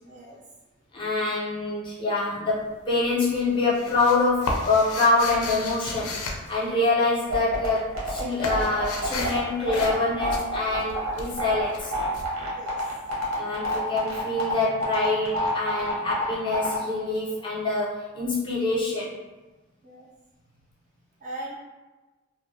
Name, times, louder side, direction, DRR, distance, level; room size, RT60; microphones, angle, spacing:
voice 1, 0.1-0.4 12.5-12.8 19.8-20.1 21.2-21.5, right 1 dB, 35° right, -3 dB, 0.3 m, -39 dB
voice 2, 0.9-11.9 13.3-19.1, left 3 dB, 20° left, -6 dB, 0.5 m, -25 dB
sound 1, 2.5-3.0 3.3-7.4 7.6-13.2, left 3 dB, 80° left, 0.4 m, -34 dB
sound 2, 7.3-16.8, equal, 80° right, 0.8 m, -28 dB
2.7 x 2.0 x 2.6 m, 1.2 s
head